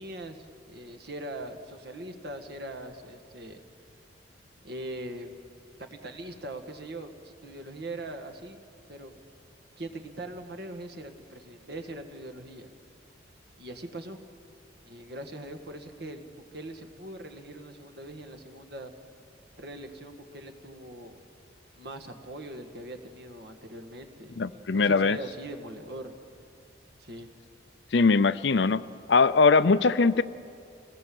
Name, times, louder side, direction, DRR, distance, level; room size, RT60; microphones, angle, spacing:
voice 1, 0.0-3.6 4.6-5.3 5.8-8.6 8.9-9.2 9.8-12.7 13.6-14.2 14.9-18.9 19.6-21.2 21.8-26.1 27.0-27.3, right 1 dB, 55° right, 6 dB, 1.9 m, -41 dB
voice 2, 24.4-25.2 27.9-28.8 29.1-30.2, left 4 dB, 65° left, 15 dB, 0.5 m, -21 dB
28.0 x 19.0 x 7.8 m, 2.5 s
head